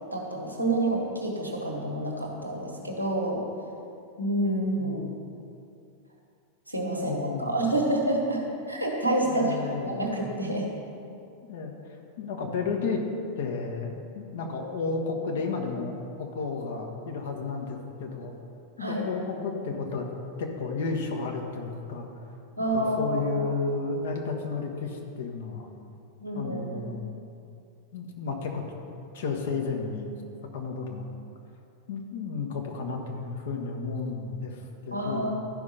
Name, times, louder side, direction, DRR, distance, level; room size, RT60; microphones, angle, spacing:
voice 1, 0.1-3.4 4.2-5.0 6.7-8.4 8.7-9.6 9.8-10.7 18.8-19.1 22.6-23.3 26.2-26.9 34.9-35.4, right 1 dB, 90° right, 0 dB, 1.5 m, -28 dB
voice 2, 4.8-5.2 7.0-7.6 9.2-10.0 11.4-11.7 12.2-13.0 13.4-18.3 18.9-20.1 20.4-22.1 22.7-25.7 26.3-27.1 27.9-28.6 29.1-30.1 30.5-31.1 31.9-35.3, left 4 dB, 60° left, 2 dB, 1.3 m, -32 dB
12.0 x 5.4 x 5.6 m, 2.6 s
figure-of-eight pair, 90°, 0 cm